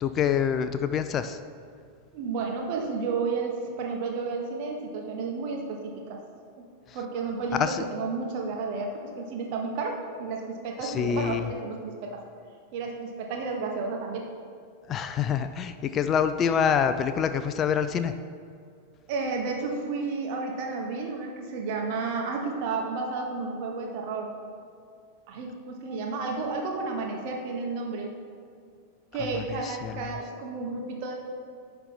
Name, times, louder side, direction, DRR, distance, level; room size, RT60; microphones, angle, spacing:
voice 1, 0.0-1.4 7.5-7.8 10.8-11.5 14.9-18.1 29.3-29.9, left 7 dB, 30° left, 10 dB, 0.3 m, -26 dB
voice 2, 2.1-6.2 6.6-6.7 6.9-12.2 12.7-14.3 19.1-24.4 25.3-28.1 29.1-31.1, right 4 dB, 45° right, 1 dB, 1.3 m, -32 dB
10.0 x 3.4 x 5.8 m, 2.3 s
figure-of-eight pair, 90°, 0 cm